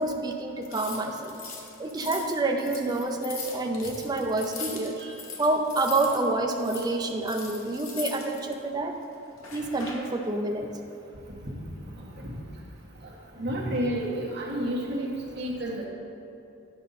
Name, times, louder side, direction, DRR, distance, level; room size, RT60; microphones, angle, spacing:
voice 1, 0.0-1.4 1.8-5.0 5.4-8.9 9.5-10.7, right 2 dB, 20° right, 2 dB, 0.5 m, -28 dB
sound 1, 0.6-6.2 6.5-8.5 9.4-10.1, left 5 dB, 70° left, 1.1 m, -40 dB
voice 2, 12.0-12.3 13.4-15.8, equal, 50° right, -4 dB, 1.5 m, -31 dB
10.5 x 5.3 x 4.1 m, 2.7 s
head